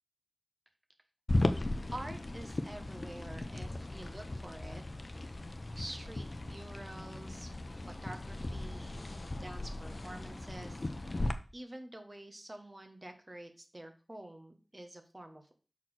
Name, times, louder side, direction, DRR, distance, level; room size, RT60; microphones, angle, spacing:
sound 1, 1.3-11.3, left 2 dB, 55° left, 0.7 m, -37 dB
voice 1, 1.9-4.8 5.7-7.5 7.8-8.9 9.4-15.5, right 1 dB, 35° right, 5 dB, 1.5 m, -48 dB
6.0 x 4.4 x 6.1 m, 0.36 s
wide cardioid pair, 60°, 0 cm